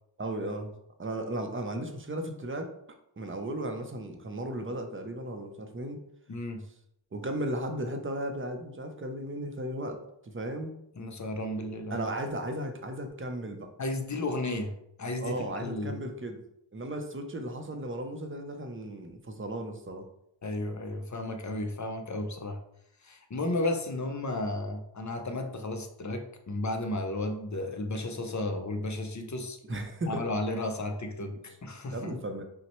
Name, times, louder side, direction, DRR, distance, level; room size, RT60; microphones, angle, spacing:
voice 1, 0.2-0.7 1.0-2.7 3.2-6.0 7.1-10.7 11.9-13.7 15.2-16.4 16.7-20.1 29.7-30.2 31.9-32.4, right 1 dB, 30° right, 5 dB, 0.6 m, -35 dB
voice 2, 6.3-6.6 11.0-12.0 13.8-16.0 20.4-22.6 23.0-29.6 30.1-32.1, left 2 dB, 40° left, 5 dB, 0.6 m, -33 dB
5.6 x 2.1 x 3.0 m, 0.77 s
wide cardioid pair, 60°, 45 cm